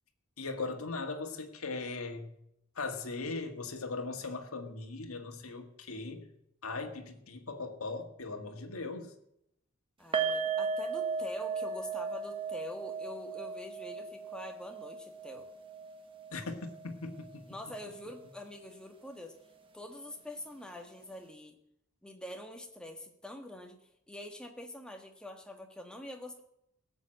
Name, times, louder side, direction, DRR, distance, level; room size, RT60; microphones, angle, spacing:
voice 1, 0.4-2.3 2.8-6.3 6.6-9.1 16.3-16.5 16.8-17.5, left 3 dB, 85° left, 4 dB, 1.7 m, -39 dB
voice 2, 10.0-15.5 17.5-19.4 19.7-21.6 22.0-23.8 24.1-26.4, left 1 dB, 5° left, 3 dB, 1.5 m, -45 dB
sound 1, 10.1-17.3 17.6-17.8 18.2-18.3, right 5 dB, 25° right, 1.1 m, -36 dB
17.5 x 7.2 x 7.6 m, 0.78 s
head